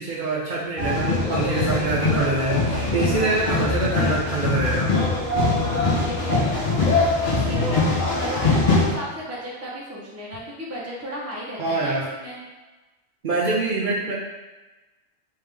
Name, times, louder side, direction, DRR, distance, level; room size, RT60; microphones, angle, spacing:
voice 1, 0.0-4.9 11.6-12.1 13.2-14.1, right 3 dB, 55° right, -6 dB, 0.8 m, -25 dB
sound 1, 0.8-8.9, left 3 dB, 45° left, 1.0 m, -22 dB
voice 2, 5.6-12.4, equal, 15° right, -5 dB, 0.7 m, -34 dB
3.5 x 3.2 x 3.3 m, 1.2 s
omnidirectional pair, 1.1 m